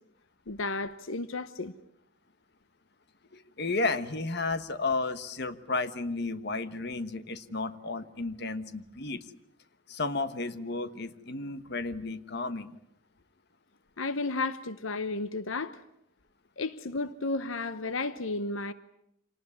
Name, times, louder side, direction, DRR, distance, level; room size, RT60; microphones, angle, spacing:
voice 1, 0.5-1.7 14.0-15.8 16.6-18.7, left 3 dB, 80° left, 1.0 m, -33 dB
voice 2, 3.3-9.2 9.9-12.7, left 3 dB, 55° left, 1.3 m, -33 dB
26.5 x 19.5 x 9.8 m
head